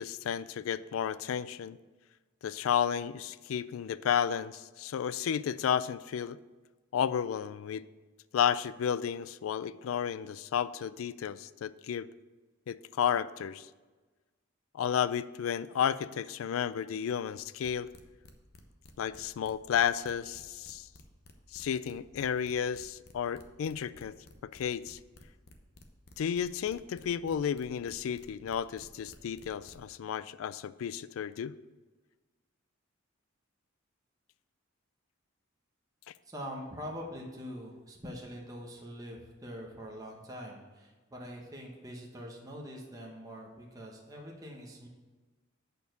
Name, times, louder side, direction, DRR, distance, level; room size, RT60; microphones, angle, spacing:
voice 1, 0.0-1.8 2.4-6.4 6.9-7.9 8.3-12.1 12.7-13.7 14.7-17.9 19.0-20.9 21.5-24.2 24.5-25.0 26.2-31.5, left 8 dB, 75° left, 17 dB, 0.3 m, -32 dB
sound 1, 17.4-30.0, left 2 dB, 50° left, 0.8 m, -55 dB
voice 2, 36.2-44.9, equal, 15° right, -1 dB, 1.0 m, -44 dB
8.2 x 4.5 x 6.5 m, 1.3 s
head